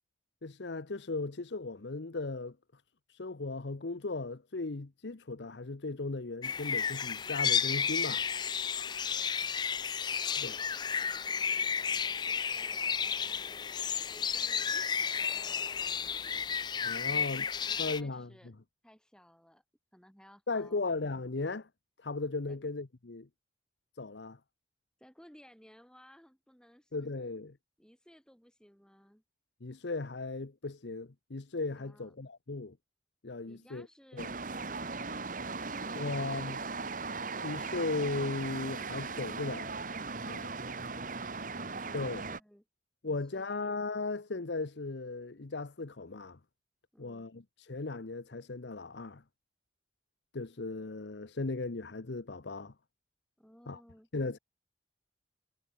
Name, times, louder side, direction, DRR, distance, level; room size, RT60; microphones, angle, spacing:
voice 1, 0.4-2.8 3.1-8.3 10.4-10.6 16.8-17.4 17.8-18.3 20.5-21.7 22.0-23.3 24.0-24.4 26.9-27.6 29.6-32.8 33.2-33.9 34.1-34.3 36.0-36.6 37.4-39.7 40.2-40.6 41.9-42.3 43.0-46.4 47.0-49.2 50.3-52.7 53.7-53.8 54.1-54.4, left 3 dB, 75° left, 0.9 m, -37 dB
sound 1, 6.4-18.0, left 7 dB, 25° left, 0.3 m, -32 dB
voice 2, 10.2-13.5 14.0-16.3 17.1-18.5 18.8-19.6 19.9-20.9 22.5-22.6 25.0-27.3 27.8-29.2 31.8-32.1 33.4-35.1 35.6-36.9 40.7-42.6 43.0-43.7 46.9-47.3 53.4-54.1, equal, 5° left, 7.5 m, -59 dB
sound 2, 34.2-42.4, right 4 dB, 45° right, 1.9 m, -38 dB
head